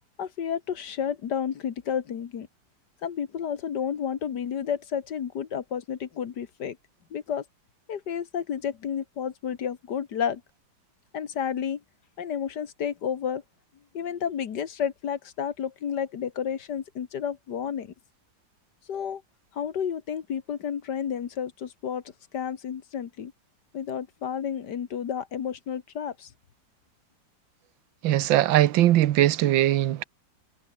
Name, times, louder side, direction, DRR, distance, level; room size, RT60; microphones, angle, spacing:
voice 1, 0.2-2.5 3.0-6.8 7.1-7.4 7.9-10.4 11.1-11.8 12.2-13.4 13.9-17.9 18.9-19.2 19.5-22.0 22.3-23.3 23.7-26.3, left 8 dB, 60° left, 1.9 m, -31 dB
voice 2, 28.0-30.0, right 13 dB, 85° right, 1.6 m, -20 dB
omnidirectional pair, 2.1 m